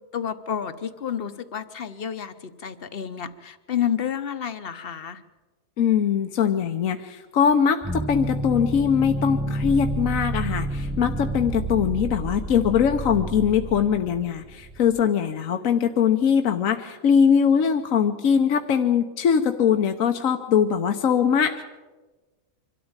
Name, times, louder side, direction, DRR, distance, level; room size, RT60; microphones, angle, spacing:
voice 1, 0.1-5.2, left 9 dB, 45° left, 11 dB, 1.0 m, -30 dB
voice 2, 5.8-21.6, left 7 dB, 70° left, 5 dB, 1.3 m, -21 dB
sound 1, 7.8-15.0, right 2 dB, 5° right, 0.5 m, -30 dB
24.5 x 13.0 x 8.9 m, 1.2 s
omnidirectional pair, 1.5 m